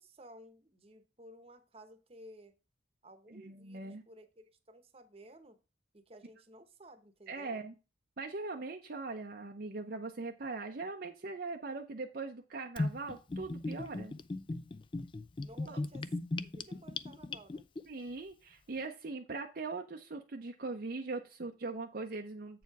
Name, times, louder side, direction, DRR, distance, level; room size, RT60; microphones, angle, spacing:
voice 1, 0.0-2.5 3.0-5.6 5.9-7.6 15.4-16.1 16.4-17.7, right 1 dB, 30° right, 9 dB, 1.0 m, -55 dB
voice 2, 3.3-4.0 7.3-7.7 8.2-14.1 15.7-15.8 17.8-22.6, right 3 dB, 50° right, 3 dB, 0.6 m, -41 dB
Gurgling / Bathtub (filling or washing), 12.8-17.8, left 2 dB, 25° left, 0.3 m, -37 dB
8.1 x 4.7 x 4.6 m, 0.30 s
head